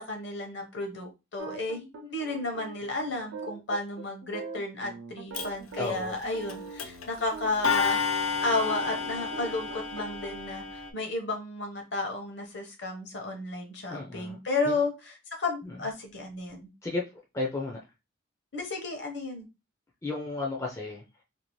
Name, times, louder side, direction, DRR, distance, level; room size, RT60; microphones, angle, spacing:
voice 1, 0.0-8.0 8.4-16.7 18.5-19.5, left 2 dB, 55° left, 0.8 m, -32 dB
sound 1, 1.4-8.0 8.5-10.3, right 4 dB, 80° right, 0.5 m, -42 dB
Clock, 5.3-5.5 6.5-6.6 6.8-7.1 7.6-10.9, left 5 dB, 90° left, 0.5 m, -31 dB
voice 2, 5.8-6.2 13.9-14.4 14.7-14.8 15.6-15.8 16.8-17.0 17.3-17.8 20.0-21.0, left 3 dB, 15° left, 0.4 m, -33 dB
2.6 x 2.4 x 3.0 m
head